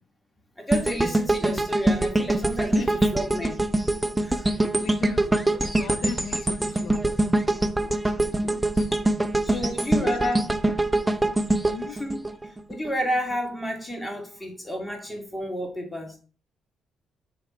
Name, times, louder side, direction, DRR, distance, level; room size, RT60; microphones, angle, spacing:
voice 1, 0.6-2.9 3.1-3.6 4.2-4.5 9.4-10.5 11.9-12.2 12.7-16.2, equal, 10° left, 2.3 m, -30 dB
sound 1, 0.7-12.9 13.3-13.5, right 2 dB, 10° right, 0.7 m, -24 dB
voice 2, 4.3-5.3 5.6-9.2 9.6-10.2 11.6-12.0, left 7 dB, 75° left, 0.5 m, -41 dB
6.9 x 3.5 x 5.6 m
cardioid pair, 90°, 0 cm